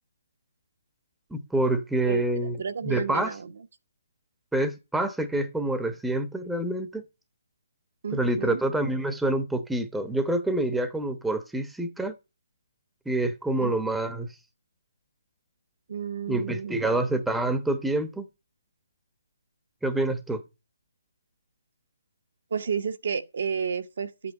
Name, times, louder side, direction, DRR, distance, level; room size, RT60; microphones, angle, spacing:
voice 1, 1.3-2.6 2.8-3.3 4.5-7.0 8.1-12.1 13.1-14.3 16.3-18.3 19.8-20.4, right 1 dB, 5° right, 1.1 m, -27 dB
voice 2, 2.1-3.5 8.0-8.6 13.6-13.7 15.9-17.0 22.5-24.3, right 6 dB, 55° right, 1.2 m, -31 dB
12.5 x 8.4 x 5.5 m
figure-of-eight pair, 145°, 0 cm